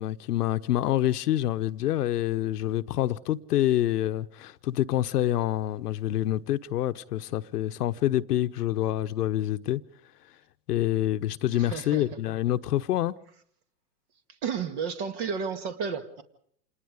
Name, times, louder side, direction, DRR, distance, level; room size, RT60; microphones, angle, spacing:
voice 1, 0.0-9.8 10.7-13.1, left 13 dB, 70° left, 1.0 m, -27 dB
voice 2, 11.5-12.0 14.4-16.2, right 6 dB, 40° right, 2.2 m, -32 dB
27.5 x 20.0 x 5.1 m
hypercardioid pair, 140°, 48 cm